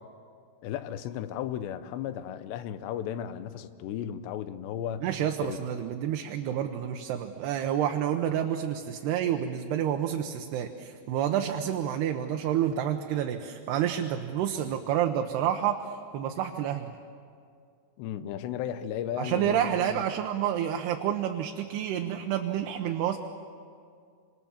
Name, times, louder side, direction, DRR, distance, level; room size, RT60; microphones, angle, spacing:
voice 1, 0.6-5.1 5.5-5.6 18.0-20.1, left 10 dB, 85° left, 3.2 m, -35 dB
voice 2, 5.0-16.9 19.2-23.2, right 10 dB, 75° right, 3.0 m, -29 dB
28.5 x 27.0 x 7.3 m
omnidirectional pair, 4.9 m